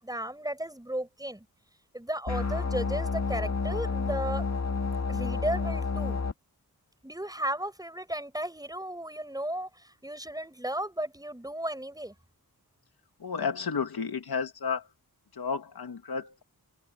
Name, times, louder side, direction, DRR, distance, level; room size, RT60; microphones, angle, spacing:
voice 1, 0.0-1.4 1.9-4.4 5.1-6.2 7.0-12.1, right 1 dB, 10° right, 6.7 m, -34 dB
sound 1, 2.3-6.3, left 4 dB, 45° left, 1.8 m, -30 dB
voice 2, 13.2-14.9 15.3-16.4, left 5 dB, 70° left, 2.2 m, -32 dB
open air
wide cardioid pair, 120°, 38 cm